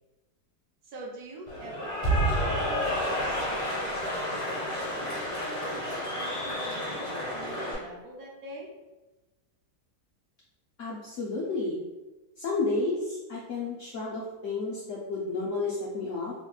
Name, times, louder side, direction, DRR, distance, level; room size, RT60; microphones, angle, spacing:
voice 1, 0.8-8.7, right 2 dB, 70° right, -1 dB, 1.1 m, -45 dB
Cheering / Applause, 1.5-7.8, equal, 35° left, 1.5 m, -30 dB
voice 2, 10.8-11.8 12.4-16.3, left 3 dB, 70° left, -5 dB, 0.7 m, -31 dB
3.2 x 2.8 x 2.2 m, 1.1 s
omnidirectional pair, 1.8 m